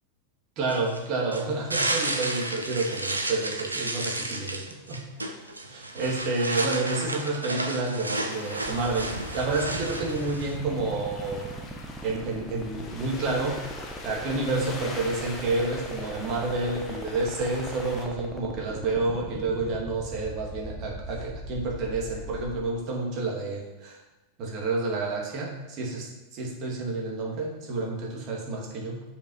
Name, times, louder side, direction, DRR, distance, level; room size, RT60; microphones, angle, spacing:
voice 1, 0.6-5.4 5.6-11.6 12.0-13.6 14.0-24.0 24.4-29.0, right 3 dB, 40° right, -1 dB, 2.4 m, -29 dB
sound 1, 0.7-10.6, right 2 dB, 80° right, 0.8 m, -32 dB
sound 2, 8.3-18.1, left 3 dB, 30° left, 1.4 m, -43 dB
sound 3, 8.6-22.6, right 1 dB, 5° right, 1.1 m, -39 dB
6.9 x 5.5 x 5.6 m, 1.1 s
figure-of-eight pair, 90°, 0 cm